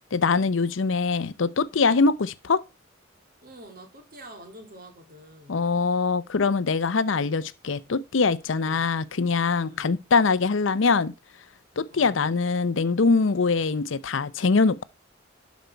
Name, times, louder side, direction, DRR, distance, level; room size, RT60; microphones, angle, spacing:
voice 1, 0.1-2.6 5.5-11.1 11.8-14.8, left 4 dB, 75° left, 0.6 m, -23 dB
voice 2, 3.4-5.7 8.5-8.9 9.6-10.0 11.9-12.3, right 1 dB, 50° right, 2.1 m, -47 dB
12.0 x 5.2 x 4.5 m
head